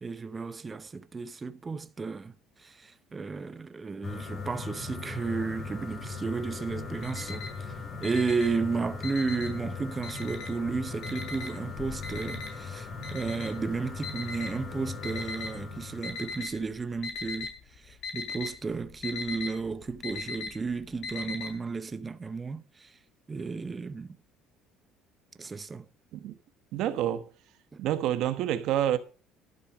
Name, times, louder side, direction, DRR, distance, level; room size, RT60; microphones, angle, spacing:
voice 1, 0.0-7.7 8.0-23.0 23.3-24.2 25.4-25.9, right 4 dB, 25° right, 0.8 m, -33 dB
sound 1, 4.0-16.5, left 4 dB, 40° left, 3.8 m, -39 dB
Alarm, 6.7-7.7 8.0-9.6 10.0-10.7 11.0-15.5 16.0-16.6 16.9-17.6 17.8-21.5, left 4 dB, 60° left, 3.3 m, -38 dB
voice 2, 26.7-27.3 27.8-29.0, right 11 dB, 70° right, 1.2 m, -28 dB
11.5 x 6.7 x 6.1 m
cardioid pair, 105°, 0 cm